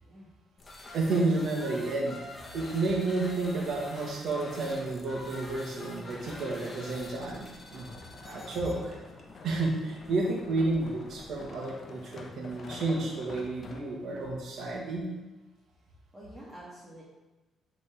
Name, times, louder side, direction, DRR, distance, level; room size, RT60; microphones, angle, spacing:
sound 1, 0.6-13.8, left 2 dB, 35° left, 1.2 m, -48 dB
voice 1, 0.9-2.2 2.5-7.9 8.2-8.9 9.4-15.0, right 2 dB, 70° right, -1 dB, 1.8 m, -31 dB
sound 2, 3.3-14.3 14.9-15.0, left 4 dB, 50° left, 0.9 m, -49 dB
voice 2, 16.1-17.1, right 1 dB, 5° right, -9 dB, 1.8 m, -48 dB
9.6 x 4.0 x 3.7 m, 1.1 s
cardioid pair, 90°, 0 cm